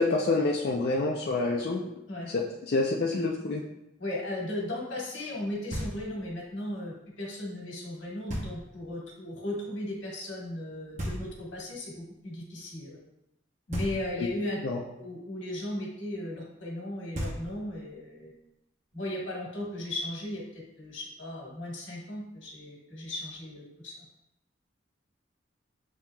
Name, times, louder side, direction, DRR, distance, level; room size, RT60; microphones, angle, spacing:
voice 1, 0.0-1.8 2.3-3.6 14.2-14.3 14.6-14.8, left 3 dB, 55° left, -1 dB, 0.4 m, -27 dB
voice 2, 4.0-13.0 13.7-14.6 15.0-18.3 18.9-23.9, left 1 dB, 85° left, -3 dB, 1.5 m, -36 dB
Knock, 5.7-6.4 8.3-8.9 11.0-11.8 13.7-14.5 16.8-16.9 17.1-17.9, equal, 40° right, 0.8 m, -37 dB
7.2 x 2.8 x 2.3 m, 0.88 s
head